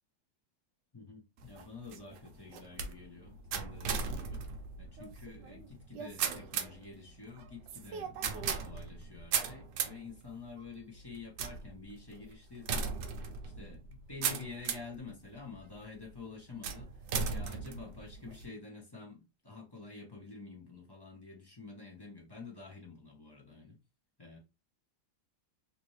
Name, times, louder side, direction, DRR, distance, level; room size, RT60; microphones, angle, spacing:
voice 1, 0.9-4.5 4.8-23.8 24.2-24.4, left 4 dB, 30° left, 0.4 m, -49 dB
sound 1, 1.4-15.0 15.6-16.0 16.6-18.4, right 6 dB, 75° right, 1.2 m, -38 dB
3.4 x 2.8 x 3.1 m
omnidirectional pair, 2.1 m